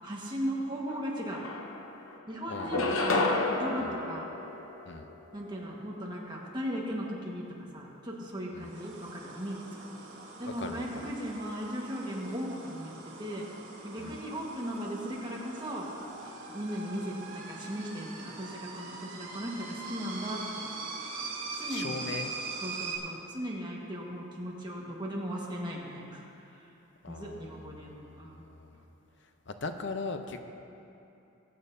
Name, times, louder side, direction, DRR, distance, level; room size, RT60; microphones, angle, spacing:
voice 1, 0.0-1.4 2.3-4.3 5.3-7.4 7.7-10.0 10.4-13.4 13.8-15.9 16.5-20.7 21.6-22.0 22.6-26.5 27.1-28.4, equal, 20° right, -3 dB, 1.4 m, -37 dB
sound 1, 0.9-1.0 1.3-2.1 2.6-5.2, left 2 dB, 85° left, 0.9 m, -30 dB
voice 2, 2.5-3.0 3.8-3.9 4.9-5.1 8.5-8.7 10.4-11.1 14.0-14.2 21.7-22.3 27.0-28.8 29.5-30.4, left 3 dB, 60° left, 6 dB, 0.7 m, -40 dB
sound 2, 8.6-23.0, right 3 dB, 65° right, 2.1 m, -42 dB
21.0 x 8.8 x 2.7 m, 2.9 s
head